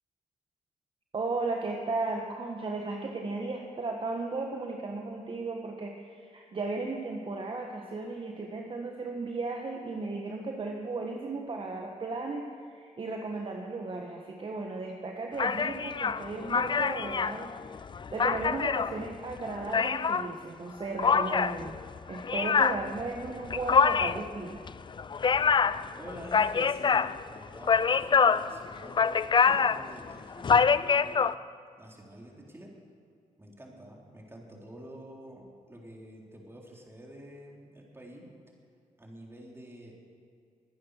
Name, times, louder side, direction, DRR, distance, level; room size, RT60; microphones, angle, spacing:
voice 1, 1.1-17.5 18.1-21.8 22.1-24.6, right 3 dB, 40° right, 2 dB, 1.4 m, -35 dB
sound 1, 15.4-20.3 21.0-31.3, left 6 dB, 35° left, 0.4 m, -26 dB
voice 2, 25.9-31.3 31.8-32.7 33.4-38.3 39.0-39.9, right 1 dB, 15° right, -1 dB, 3.8 m, -48 dB
22.5 x 9.6 x 6.6 m, 2.3 s
cardioid pair, 85°, 14 cm